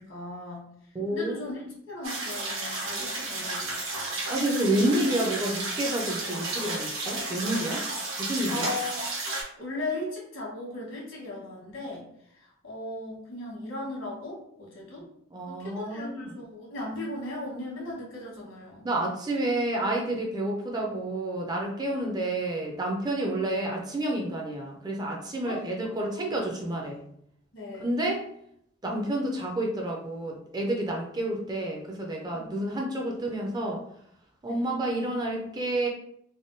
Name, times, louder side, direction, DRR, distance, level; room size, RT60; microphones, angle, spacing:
voice 1, 0.0-4.2 8.5-9.0 9.6-12.0 12.3-15.1 15.5-18.9 25.4-26.3 27.5-27.9 32.3-32.5 34.4-34.7, left 2 dB, 75° left, -4 dB, 1.3 m, -38 dB
voice 2, 0.9-1.4 4.3-7.9 8.2-8.7 15.3-16.3 18.8-27.0 27.8-28.2 28.8-33.8 34.4-35.9, right 1 dB, 20° right, -1 dB, 0.4 m, -29 dB
sound 1, 2.0-9.4, right 2 dB, 85° right, 1.0 m, -32 dB
3.4 x 2.2 x 2.6 m, 0.72 s
head